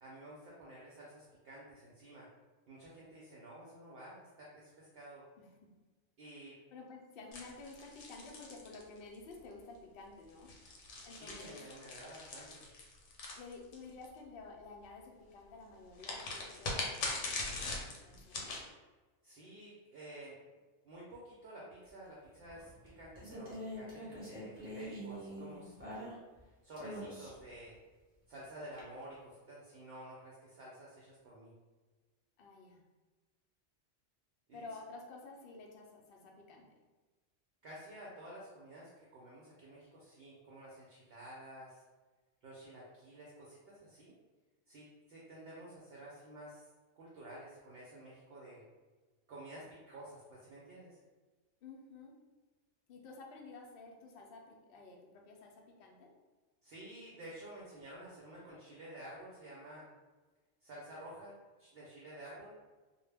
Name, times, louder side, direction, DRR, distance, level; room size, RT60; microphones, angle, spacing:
voice 1, 0.0-2.3 2.7-5.3 6.2-6.6 11.1-12.7 19.2-20.4 20.8-26.1 26.6-27.7 28.3-31.5 34.5-34.6 37.6-41.8 42.4-44.1 44.7-46.7 46.9-48.6 49.3-51.0 56.6-59.9 60.6-62.6, right 1 dB, 65° right, -5 dB, 0.7 m, -51 dB
voice 2, 5.4-5.7 6.7-10.5 11.0-11.6 13.3-17.7 18.1-18.5 32.4-32.8 34.5-36.7 51.6-52.2 52.9-56.1, left 3 dB, 60° left, 0 dB, 0.7 m, -52 dB
sound 1, 7.3-9.3 10.3-14.0 16.0-18.6, left 2 dB, 85° left, 1.0 m, -41 dB
sound 2, 22.5-26.4 26.8-27.5 28.8-28.9, equal, 10° right, 1.1 m, -45 dB
2.2 x 2.1 x 3.3 m, 1.3 s
omnidirectional pair, 1.2 m